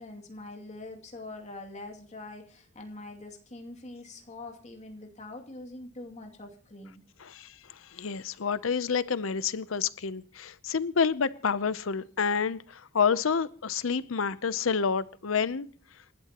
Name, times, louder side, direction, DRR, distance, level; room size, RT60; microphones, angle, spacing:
voice 1, 0.0-7.0, left 2 dB, 35° left, 2 dB, 2.6 m, -44 dB
voice 2, 7.9-15.7, left 6 dB, 80° left, 16 dB, 0.7 m, -28 dB
28.0 x 12.5 x 3.0 m, 0.43 s
head